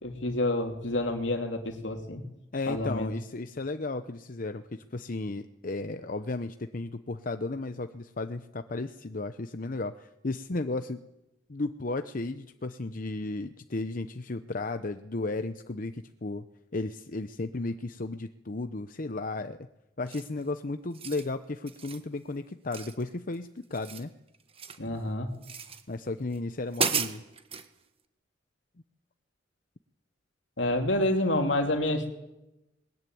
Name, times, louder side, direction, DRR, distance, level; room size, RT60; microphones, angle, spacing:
voice 1, 0.0-2.2 2.7-3.1 24.8-25.3 30.6-32.1, left 1 dB, 75° left, 5 dB, 2.9 m, -28 dB
voice 2, 2.5-11.0 11.5-16.4 16.7-19.6 20.0-24.1 25.9-27.2, left 2 dB, 45° left, 9 dB, 0.8 m, -34 dB
sound 1, 20.1-20.4 20.8-21.3 21.7-22.1 22.7-23.4 23.6-24.9 25.4-25.8 26.3-26.4 26.7-27.7, right 6 dB, 30° right, 1.6 m, -34 dB
21.0 x 21.0 x 9.4 m, 0.94 s
head